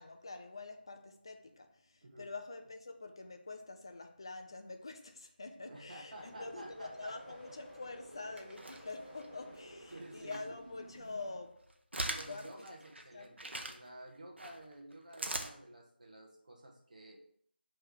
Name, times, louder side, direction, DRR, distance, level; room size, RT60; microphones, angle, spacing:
voice 1, 0.0-11.7 12.3-12.5 13.1-13.4, left 3 dB, 25° left, 0.5 m, -46 dB
voice 2, 5.6-7.3 9.5-9.6 9.9-10.4 12.0-17.2, right 1 dB, 45° right, 1.3 m, -52 dB
sound 1, 6.1-11.4, equal, 10° right, 0.8 m, -53 dB
sound 2, 8.4-9.3 9.9-10.5 10.9-13.8 14.4-15.5, right 1 dB, 85° right, 0.9 m, -41 dB
6.3 x 3.3 x 4.9 m
figure-of-eight pair, 175°, 6 cm